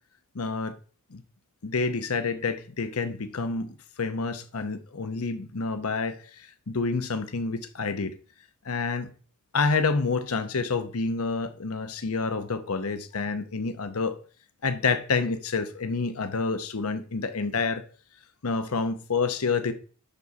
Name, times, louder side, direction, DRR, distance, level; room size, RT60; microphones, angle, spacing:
voice 1, 0.3-0.8 1.1-1.2 1.6-8.1 8.6-9.1 9.5-14.1 14.6-17.8 18.4-19.7, left 4 dB, 75° left, 0.8 m, -28 dB
10.5 x 4.1 x 4.6 m
head